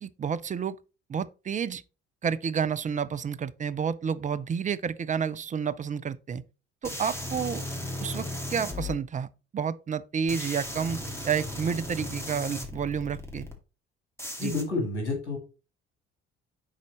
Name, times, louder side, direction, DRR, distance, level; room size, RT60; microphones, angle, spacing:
voice 1, 0.0-0.8 1.1-1.8 2.2-6.4 6.8-7.6 8.0-9.3 9.5-13.5 14.4-14.5, right 7 dB, 25° right, 0.5 m, -30 dB
sound 1, 6.8-8.9 10.3-13.5 14.2-14.6, left 1 dB, 5° left, 2.2 m, -36 dB
voice 2, 14.4-15.4, left 3 dB, 80° left, 2.2 m, -29 dB
11.0 x 4.1 x 3.0 m
figure-of-eight pair, 50°, 34 cm